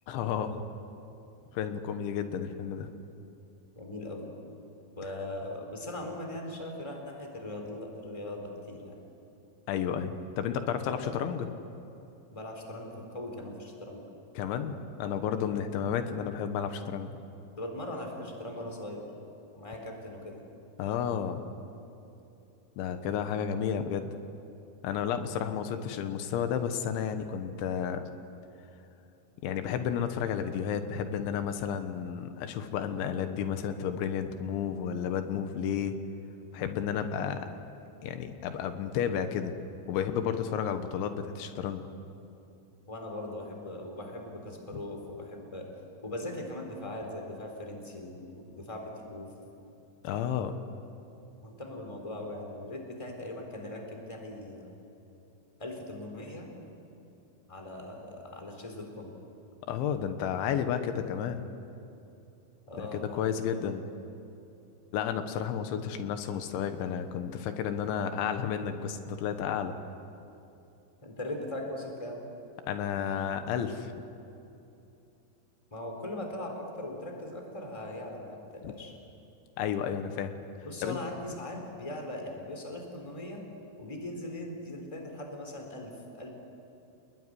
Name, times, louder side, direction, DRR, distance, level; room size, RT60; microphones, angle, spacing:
voice 1, 0.1-0.6 1.5-2.9 9.7-11.5 14.4-17.2 20.8-21.4 22.8-24.1 24.8-28.1 29.4-35.9 36.5-37.5 38.0-39.5 39.9-41.8 50.0-50.6 59.7-61.4 62.8-63.8 64.9-69.8 72.7-74.0 78.6-78.7 79.6-80.3 80.8-81.0, left 8 dB, 85° left, 8 dB, 3.6 m, -32 dB
voice 2, 3.7-4.3 5.0-9.0 10.8-11.2 12.3-14.0 17.6-19.1 19.5-20.4 42.9-45.7 46.0-49.3 51.4-54.7 55.6-56.5 57.5-59.2 62.7-63.5 71.0-72.2 75.7-78.9 80.6-83.4 83.8-86.3, left 1 dB, 10° left, 2 dB, 3.4 m, -40 dB
28.5 x 21.0 x 9.9 m, 2.8 s
omnidirectional pair, 5.2 m